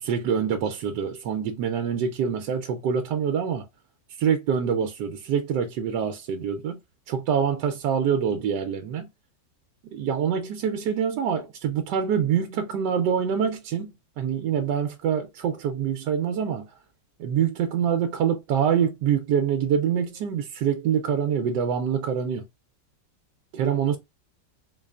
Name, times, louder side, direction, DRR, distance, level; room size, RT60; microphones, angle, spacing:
voice 1, 0.0-3.6 4.2-6.8 7.1-9.1 9.9-16.7 17.2-22.4 23.5-24.0, right 7 dB, 75° right, 1.2 m, -25 dB
3.9 x 3.0 x 2.3 m
omnidirectional pair, 1.9 m